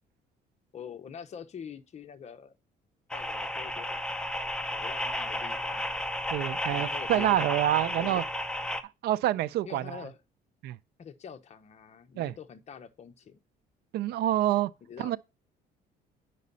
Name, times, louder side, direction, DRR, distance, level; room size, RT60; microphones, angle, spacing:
voice 1, 0.7-2.6 3.1-4.0 4.7-6.0 6.7-7.4 7.9-8.2 9.6-10.2 11.0-13.4 14.9-15.2, left 7 dB, 40° left, 1.0 m, -45 dB
sound 1, 3.1-8.8, left 1 dB, 5° left, 0.8 m, -33 dB
voice 2, 6.3-8.2 9.0-10.0 10.6-10.8 12.2-12.3 13.9-14.7 15.0-15.2, right 13 dB, 70° right, 0.5 m, -27 dB
8.4 x 5.4 x 4.1 m
cardioid pair, 110°, 17 cm